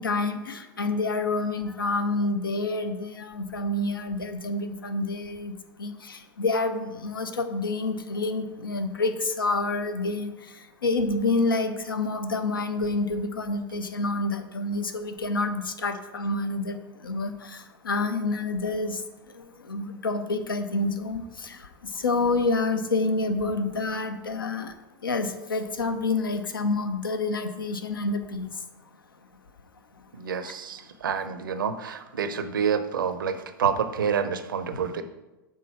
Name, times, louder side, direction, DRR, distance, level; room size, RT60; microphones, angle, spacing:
voice 1, 0.0-5.5 5.8-10.3 10.8-19.0 19.4-24.7 25.0-28.5 30.4-30.5, left 3 dB, 75° left, 8 dB, 0.6 m, -28 dB
voice 2, 30.1-35.0, right 7 dB, 70° right, 10 dB, 0.6 m, -28 dB
6.3 x 3.8 x 5.5 m, 1.0 s
figure-of-eight pair, 85°, 12 cm